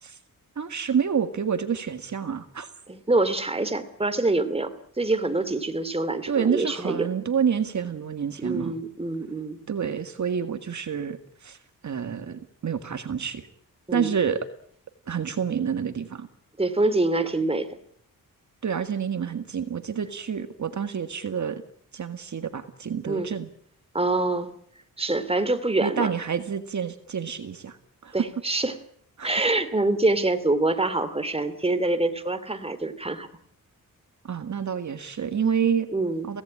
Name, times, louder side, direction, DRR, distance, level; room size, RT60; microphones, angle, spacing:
voice 1, 0.6-2.7 6.3-8.7 9.7-11.6 11.8-13.5 13.9-14.4 15.1-16.3 18.6-21.6 21.9-23.5 25.8-27.8 28.0-28.1 29.2-29.3 34.2-35.9 36.2-36.4, right 7 dB, 55° right, 8 dB, 1.8 m, -28 dB
voice 2, 2.9-7.1 8.4-9.6 13.9-14.1 16.6-17.7 23.1-23.3 23.9-24.5 25.0-26.1 28.1-28.8 29.2-33.3 35.9-36.3, right 2 dB, 15° right, 9 dB, 2.7 m, -25 dB
24.5 x 17.5 x 8.8 m, 0.64 s
cardioid pair, 95°, 35 cm